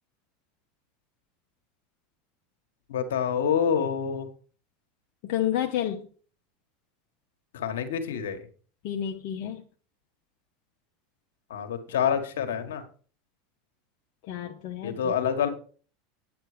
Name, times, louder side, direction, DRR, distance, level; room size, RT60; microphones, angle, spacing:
voice 1, 2.9-4.3 7.5-8.4 11.5-12.8 14.8-15.5, left 7 dB, 85° left, 7 dB, 1.7 m, -27 dB
voice 2, 5.2-6.1 8.8-9.6 14.2-15.1, left 11 dB, 60° left, 2 dB, 1.1 m, -30 dB
9.0 x 8.6 x 5.1 m, 0.41 s
hypercardioid pair, 100°, 0 cm